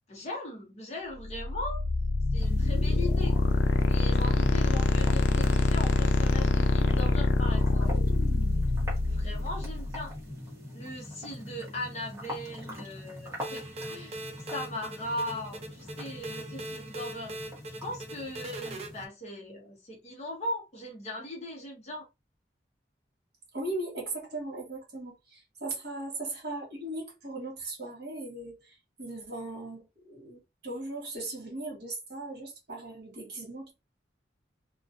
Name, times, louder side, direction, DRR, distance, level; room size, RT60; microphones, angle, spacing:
voice 1, 0.1-1.8 2.3-3.4 3.9-7.9 9.1-10.1 10.7-14.2 14.5-17.4 17.8-22.1, left 1 dB, 35° left, 0.8 m, -39 dB
sound 1, 1.2-10.1, left 3 dB, 75° left, 0.4 m, -25 dB
sound 2, 2.4-19.1, left 1 dB, 15° right, 0.9 m, -43 dB
sound 3, 13.4-18.9, right 1 dB, 35° right, 0.4 m, -41 dB
voice 2, 23.5-33.7, right 2 dB, 55° right, 1.1 m, -38 dB
2.4 x 2.3 x 2.4 m
head